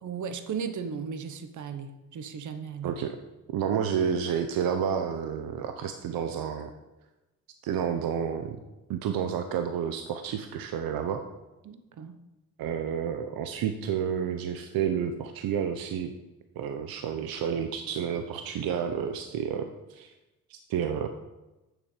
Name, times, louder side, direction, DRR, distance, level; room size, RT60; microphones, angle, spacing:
voice 1, 0.0-3.0 11.6-12.2, right 6 dB, 55° right, 9 dB, 1.1 m, -36 dB
voice 2, 2.8-3.2 3.5-6.7 7.6-8.6 8.9-11.2 12.6-16.1 16.6-20.1 20.5-21.1, right 8 dB, 80° right, 7 dB, 0.8 m, -30 dB
8.8 x 7.4 x 6.7 m, 1.0 s
cardioid pair, 85°, 35 cm